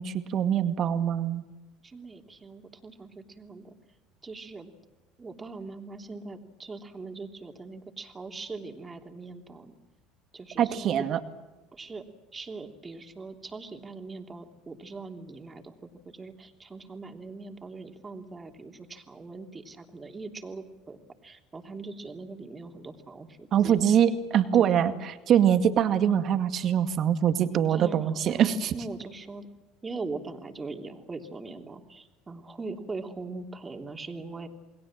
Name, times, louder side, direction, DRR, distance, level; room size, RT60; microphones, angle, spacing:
voice 1, 0.0-1.4 10.6-11.2 23.5-28.7, right 9 dB, 50° right, 9 dB, 2.1 m, -24 dB
voice 2, 1.8-3.7 4.2-4.7 5.2-9.8 10.3-11.0 11.7-12.1 12.3-21.0 21.2-24.0 24.5-24.7 27.7-29.5 29.8-34.5, right 3 dB, 25° right, 4 dB, 3.3 m, -41 dB
28.5 x 22.0 x 7.6 m, 1.2 s
hypercardioid pair, 70°, 0 cm